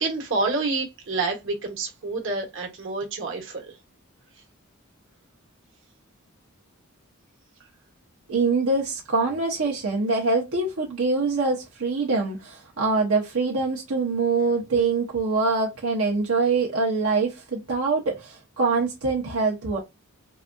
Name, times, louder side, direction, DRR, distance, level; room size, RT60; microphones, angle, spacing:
voice 1, 0.0-3.7, right 3 dB, 65° right, 1.2 m, -28 dB
voice 2, 8.3-19.8, right 3 dB, 80° right, 0.9 m, -24 dB
4.0 x 2.3 x 2.5 m
head